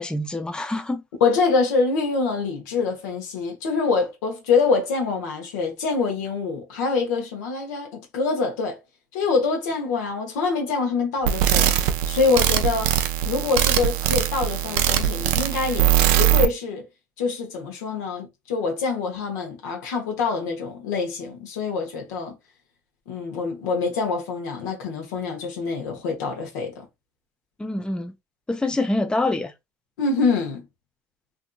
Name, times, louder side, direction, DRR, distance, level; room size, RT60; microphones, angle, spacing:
voice 1, 0.0-1.0 27.6-28.1 28.5-29.5, left 2 dB, 10° left, 0.4 m, -25 dB
voice 2, 1.2-8.8 9.1-11.7 12.1-12.9 13.2-16.9 17.2-22.4 23.1-26.8 30.0-30.6, left 4 dB, 85° left, 0.9 m, -25 dB
sound 1, 11.2-16.5, right 12 dB, 70° right, 0.4 m, -21 dB
2.6 x 2.6 x 2.2 m
hypercardioid pair, 65°, 9 cm